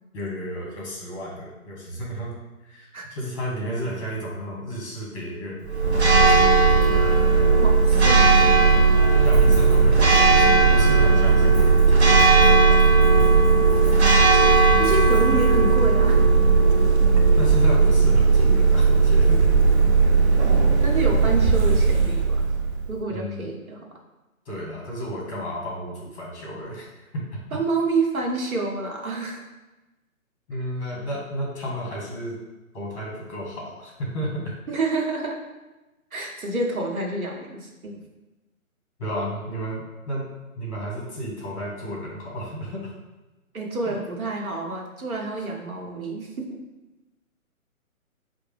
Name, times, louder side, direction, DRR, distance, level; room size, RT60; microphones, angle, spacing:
voice 1, 0.1-2.3 2.6-6.7 9.0-13.0 17.4-19.5 20.0-20.4 23.1-23.4 24.5-27.2 30.5-32.4 32.7-34.4 39.0-40.2 40.6-42.9 43.8-43.9, equal, 25° left, -4 dB, 1.1 m, -32 dB
Church bell, 5.7-22.9, right 4 dB, 50° right, 0.5 m, -17 dB
voice 2, 7.5-8.5 14.8-16.2 20.4-22.4 22.9-23.9 27.5-29.4 34.7-35.4 36.1-38.0 43.5-46.6, right 3 dB, 75° right, 0 dB, 0.9 m, -28 dB
4.5 x 2.2 x 3.2 m, 1.1 s
figure-of-eight pair, 140°, 42 cm